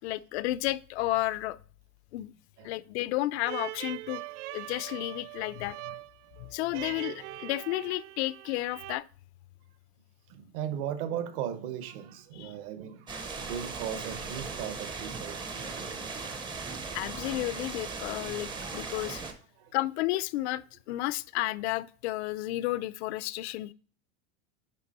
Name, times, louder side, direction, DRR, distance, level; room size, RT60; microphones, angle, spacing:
voice 1, 0.0-1.6 2.1-2.3 2.6-4.2 4.5-6.0 6.4-9.0 12.4-12.5 16.9-19.2 19.7-23.7, left 17 dB, 70° left, 0.5 m, -32 dB
sound 1, 3.4-9.0, right 17 dB, 90° right, 0.5 m, -42 dB
voice 2, 10.3-15.7 18.8-18.9 19.6-19.7, right 9 dB, 55° right, 0.9 m, -37 dB
sound 2, 13.1-19.3, right 4 dB, 15° right, 0.5 m, -38 dB
9.8 x 3.4 x 4.1 m
supercardioid pair, 170°, 34 cm